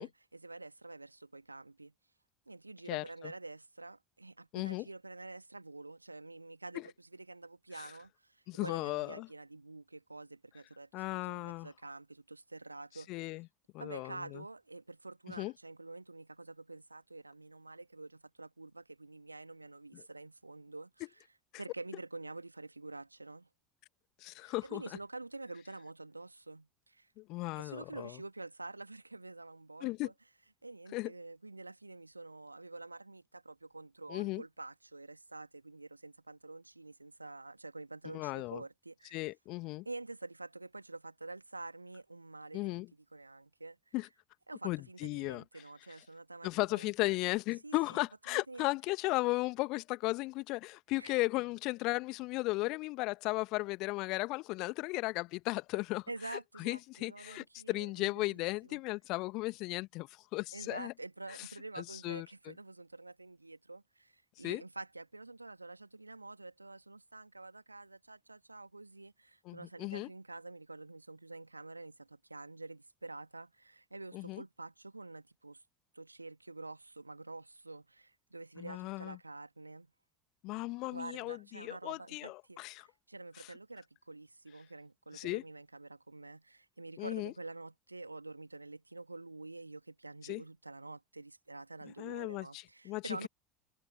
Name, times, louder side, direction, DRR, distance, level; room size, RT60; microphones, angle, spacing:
voice 1, 0.0-1.9 2.5-13.1 13.8-20.9 21.6-23.5 24.3-27.1 27.6-30.1 30.6-39.2 39.9-42.8 43.1-43.9 44.5-47.1 47.6-48.0 48.3-48.7 51.0-51.2 56.1-58.8 60.5-75.6 75.9-79.9 80.9-93.3, right 2 dB, 85° right, 1.8 m, -48 dB
voice 2, 2.9-3.3 4.5-4.9 6.8-6.9 7.8-7.9 8.5-9.3 10.9-11.7 13.1-13.5 13.7-14.4 15.4-15.5 19.9-20.0 24.2-24.8 27.2-28.2 29.8-30.1 30.9-31.1 34.1-34.4 38.1-38.6 39.1-39.9 42.5-42.9 43.9-44.1 44.6-45.4 46.4-60.9 61.8-62.5 64.4-64.6 69.5-70.1 74.1-74.4 78.6-79.2 80.4-82.9 83.4-83.5 85.1-85.4 87.0-87.3 90.2-90.4 92.0-93.3, left 22 dB, 55° left, 1.8 m, -36 dB
figure-of-eight pair, 70°, 0 cm